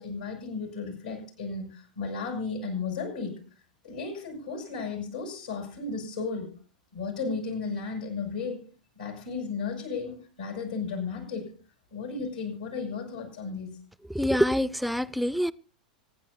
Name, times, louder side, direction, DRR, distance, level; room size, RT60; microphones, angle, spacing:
voice 1, 0.0-3.4 3.8-6.5 6.9-8.6 9.0-11.5 11.9-13.7, left 4 dB, 80° left, 6.3 m, -34 dB
voice 2, 14.1-15.5, equal, ahead, 0.5 m, -25 dB
25.5 x 9.8 x 2.6 m
figure-of-eight pair, 90°, 4 cm